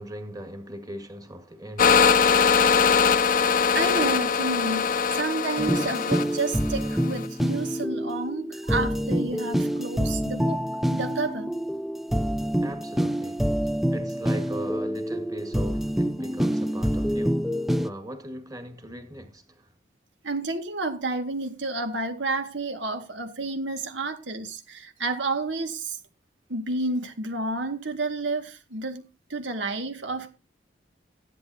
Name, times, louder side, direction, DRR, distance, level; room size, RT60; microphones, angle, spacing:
voice 1, 0.0-2.2 12.6-13.5 13.9-17.5 17.8-19.7, right 1 dB, 20° right, 1.9 m, -39 dB
sound 1, 1.8-7.2, left 6 dB, 45° left, 0.5 m, -22 dB
voice 2, 3.7-10.6 10.9-11.5 20.2-26.0 26.5-30.3, right 3 dB, 80° right, 2.0 m, -30 dB
sound 2, 5.6-17.9, equal, ahead, 0.5 m, -27 dB
15.5 x 11.0 x 2.8 m
head